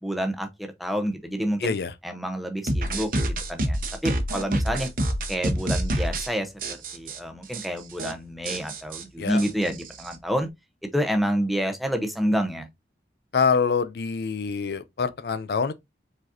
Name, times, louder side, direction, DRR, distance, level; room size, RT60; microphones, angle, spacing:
voice 1, 0.0-1.8 2.0-3.1 3.5-4.9 5.3-6.5 6.9-10.5 10.9-12.7, equal, ahead, 0.7 m, -28 dB
voice 2, 1.6-1.9 9.2-9.5 13.3-15.7, left 5 dB, 65° left, 0.4 m, -25 dB
sound 1, 2.7-6.3 6.6-7.2 7.5-7.7 7.9-8.1 8.5-10.2, right 1 dB, 50° right, 0.9 m, -27 dB
5.0 x 4.0 x 2.6 m
head